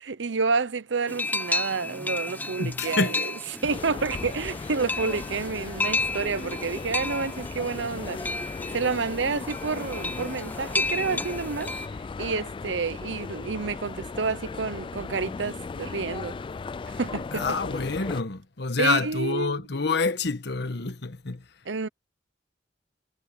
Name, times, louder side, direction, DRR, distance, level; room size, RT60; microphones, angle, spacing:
voice 1, 0.0-3.1 3.6-8.2 8.7-11.7 12.2-16.3 16.9-17.6 18.8-19.6 21.7-21.9, right 4 dB, 85° right, 0.8 m, -29 dB
sound 1, 1.1-11.9, left 2 dB, 10° left, 1.1 m, -33 dB
voice 2, 2.6-3.3 17.3-21.4, left 4 dB, 65° left, 1.3 m, -27 dB
sound 2, 3.7-18.2, left 4 dB, 30° left, 0.3 m, -37 dB
head